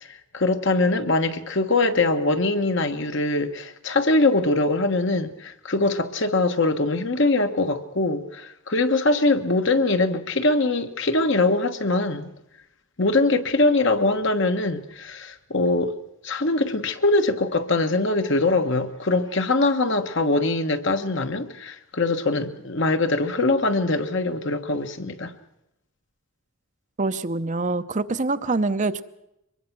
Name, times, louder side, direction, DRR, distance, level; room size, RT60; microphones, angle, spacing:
voice 1, 0.0-12.3 13.0-16.0 16.2-25.3, left 2 dB, 60° left, 1.4 m, -22 dB
voice 2, 27.0-29.0, right 3 dB, 35° right, 0.7 m, -25 dB
24.0 x 21.0 x 6.1 m
head